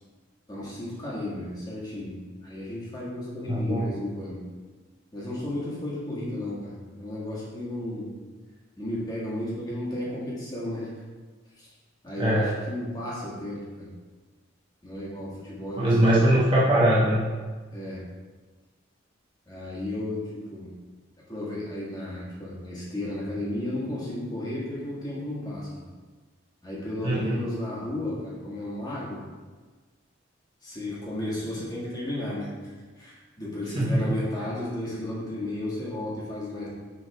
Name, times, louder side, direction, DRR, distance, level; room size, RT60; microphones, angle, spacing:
voice 1, 0.5-2.2 2.4-4.4 5.1-8.2 8.8-10.9 11.6-11.7 12.0-13.9 14.8-16.2 17.7-18.1 19.5-20.7 21.3-25.9 26.6-29.2 30.6-32.6 33.0-36.7, left 1 dB, 20° left, -7 dB, 1.7 m, -33 dB
voice 2, 3.5-3.9 12.2-12.5 15.8-17.2 27.0-27.4 33.7-34.1, right 1 dB, 25° right, -7 dB, 1.0 m, -21 dB
6.8 x 3.9 x 4.8 m, 1.4 s
head